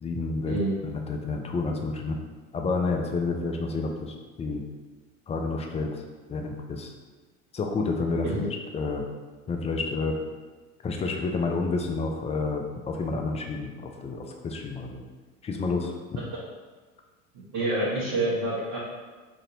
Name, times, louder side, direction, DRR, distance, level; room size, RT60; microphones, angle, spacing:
voice 1, 0.0-0.6 0.8-2.2 2.5-4.6 5.3-6.0 6.3-6.9 7.5-9.0 9.5-10.2 10.8-15.0 15.4-16.2, left 3 dB, 20° left, 2 dB, 0.3 m, -29 dB
voice 2, 17.5-18.8, right 2 dB, 50° right, -10 dB, 1.2 m, -27 dB
2.9 x 2.6 x 4.0 m, 1.3 s
hypercardioid pair, 75°, 38 cm